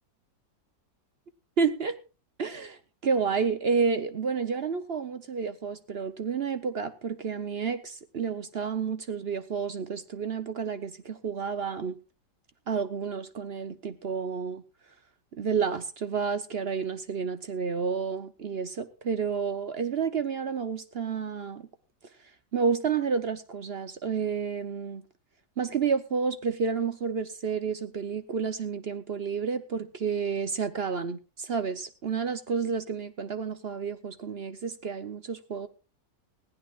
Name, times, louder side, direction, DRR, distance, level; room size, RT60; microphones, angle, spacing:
voice 1, 1.6-2.0 2.4-11.9 12.7-14.6 15.3-21.7 22.5-25.0 25.6-35.7, right 6 dB, 50° right, 11 dB, 0.7 m, -30 dB
20.5 x 15.5 x 2.4 m, 0.32 s
omnidirectional pair, 2.0 m